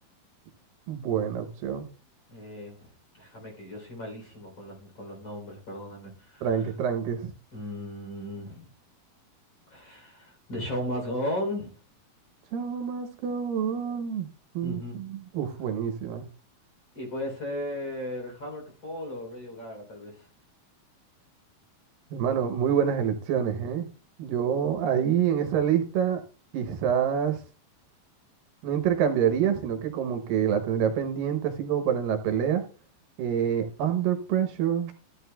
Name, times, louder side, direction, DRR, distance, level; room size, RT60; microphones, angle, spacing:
voice 1, 0.9-1.9 6.4-7.3 12.5-14.3 14.5-16.3 22.1-23.9 24.2-26.2 26.5-27.4 28.6-32.6 33.2-34.9, right 8 dB, 75° right, 7 dB, 2.6 m, -27 dB
voice 2, 2.3-2.9 3.2-6.7 7.5-8.7 9.7-11.7 14.6-15.0 16.9-20.3, left 1 dB, 35° left, 1 dB, 4.0 m, -36 dB
14.5 x 10.5 x 2.3 m, 0.36 s
omnidirectional pair, 4.1 m